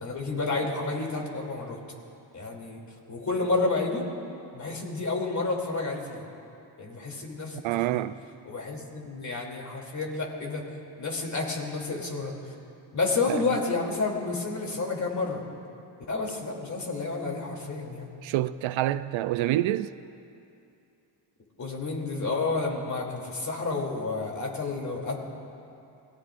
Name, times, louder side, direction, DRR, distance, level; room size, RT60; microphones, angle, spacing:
voice 1, 0.0-1.8 2.3-2.8 3.1-4.1 4.5-6.3 6.8-7.6 7.9-8.0 8.5-10.6 11.0-12.5 12.9-15.4 16.1-18.1 21.6-25.2, left 3 dB, 35° left, 3.0 m, -30 dB
voice 2, 7.6-8.2 13.3-13.5 18.2-19.9, right 14 dB, 80° right, 0.6 m, -27 dB
28.5 x 19.0 x 2.5 m
cardioid pair, 110°, 46 cm